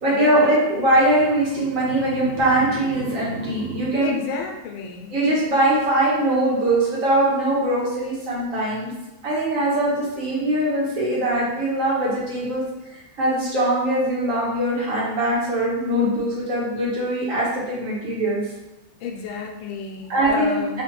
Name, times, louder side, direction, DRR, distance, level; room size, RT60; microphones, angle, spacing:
voice 1, 0.0-4.1 5.1-8.9 9.2-12.6 12.9-18.4 20.1-20.8, right 1 dB, 45° right, -6 dB, 1.6 m, -21 dB
voice 2, 4.0-5.2 19.0-20.8, left 5 dB, 90° left, 2 dB, 1.5 m, -31 dB
5.5 x 2.8 x 3.0 m, 1.0 s
omnidirectional pair, 2.2 m